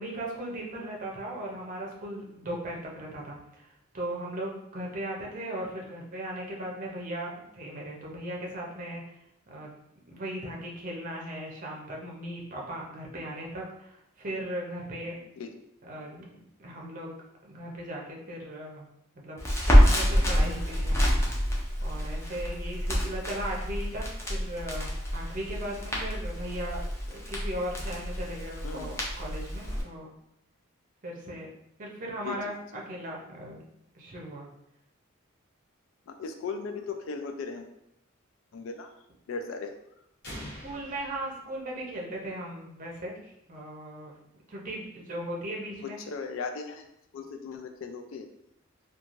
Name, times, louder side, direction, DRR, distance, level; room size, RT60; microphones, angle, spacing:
voice 1, 0.0-9.0 9.5-9.8 10.1-15.2 15.9-16.3 16.6-17.1 17.4-18.9 19.1-21.2 21.8-24.0 24.3-26.8 27.1-30.1 31.0-31.5 31.8-33.6 33.9-34.5 40.6-44.2 44.5-46.0, right 1 dB, 40° right, -2 dB, 0.6 m, -37 dB
Crackle, 19.4-29.8, equal, 15° left, 0.5 m, -27 dB
voice 2, 36.1-37.7 38.5-38.9 39.3-39.7 45.8-46.9 47.1-48.3, left 4 dB, 70° left, 6 dB, 0.3 m, -37 dB
sound 1, 40.2-42.2, equal, 50° left, 0.8 m, -44 dB
3.0 x 2.3 x 2.4 m, 0.79 s
head